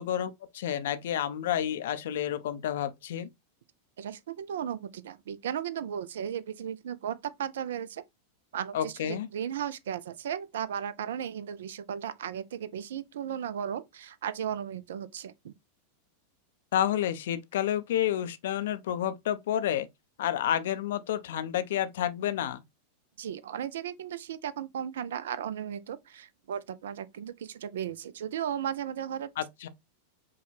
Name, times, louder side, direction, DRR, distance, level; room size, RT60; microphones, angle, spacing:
voice 1, 0.0-3.3 8.7-9.3 16.7-19.9 20.2-22.6 29.4-29.7, left 11 dB, 55° left, 0.4 m, -30 dB
voice 2, 4.0-8.0 8.5-15.5 23.2-29.3, right 9 dB, 60° right, 0.4 m, -35 dB
5.3 x 2.2 x 3.2 m
figure-of-eight pair, 90°, 0 cm